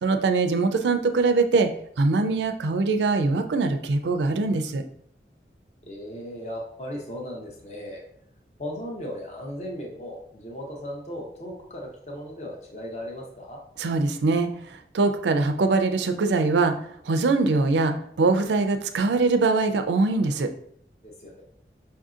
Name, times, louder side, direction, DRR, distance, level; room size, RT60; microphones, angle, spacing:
voice 1, 0.0-1.7 2.0-4.8 13.8-16.7 17.1-20.5, right 3 dB, 80° right, 7 dB, 0.4 m, -22 dB
voice 2, 5.8-8.0 8.6-13.6 21.0-21.4, equal, 40° left, -1 dB, 0.7 m, -37 dB
5.4 x 2.7 x 2.4 m, 0.66 s
head